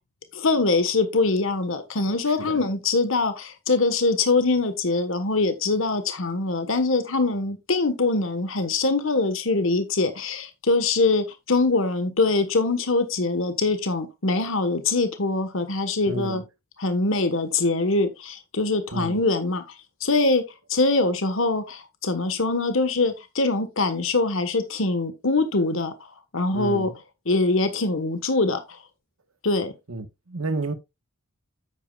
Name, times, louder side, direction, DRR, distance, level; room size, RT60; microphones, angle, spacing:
voice 1, 0.3-16.4 16.8-19.6 20.0-25.9 26.3-26.9 27.2-28.8 29.4-29.7, left 3 dB, 65° left, 1.3 m, -23 dB
voice 2, 2.3-2.6 16.1-16.4 18.9-19.2 26.5-26.9 29.9-30.7, right 2 dB, 80° right, 1.2 m, -31 dB
9.4 x 8.6 x 2.3 m
head